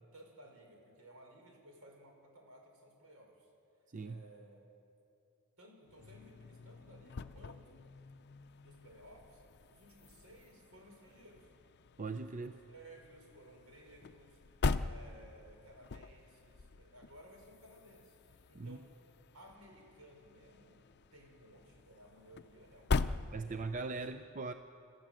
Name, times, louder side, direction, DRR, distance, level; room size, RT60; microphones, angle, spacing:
voice 1, 0.0-3.5 4.0-4.6 5.6-7.8 8.6-9.4 9.7-11.5 12.4-14.4 14.8-18.9 19.3-20.8 21.1-23.6 23.9-24.0, right 1 dB, 75° right, 1 dB, 5.3 m, -58 dB
sound 1, 5.9-23.9, left 4 dB, 50° left, 0.5 m, -42 dB
voice 2, 12.0-12.5 18.5-18.8 23.3-24.5, right 3 dB, 35° right, 8 dB, 0.6 m, -40 dB
29.5 x 14.0 x 7.7 m, 2.7 s
head